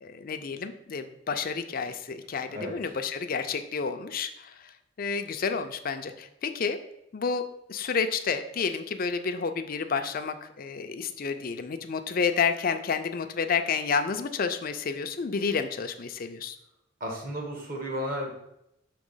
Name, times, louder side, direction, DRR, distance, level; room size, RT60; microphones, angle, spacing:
voice 1, 0.0-4.5 5.0-6.8 7.1-7.4 7.7-16.5, left 5 dB, 50° left, 8 dB, 0.5 m, -30 dB
voice 2, 17.0-18.3, equal, 50° right, 0 dB, 1.6 m, -33 dB
6.1 x 2.9 x 5.5 m, 0.82 s
head